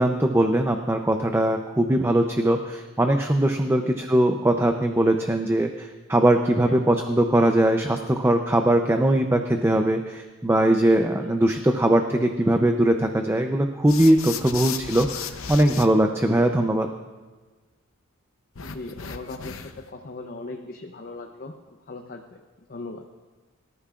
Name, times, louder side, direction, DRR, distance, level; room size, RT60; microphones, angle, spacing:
voice 1, 0.0-16.9, right 1 dB, 10° right, 4 dB, 0.6 m, -21 dB
sound 1, 13.9-15.9 18.5-19.9, left 7 dB, 80° left, 0.8 m, -35 dB
voice 2, 18.6-22.4 22.7-23.0, left 2 dB, 45° left, 3 dB, 0.8 m, -39 dB
24.5 x 13.5 x 2.5 m, 1.3 s
head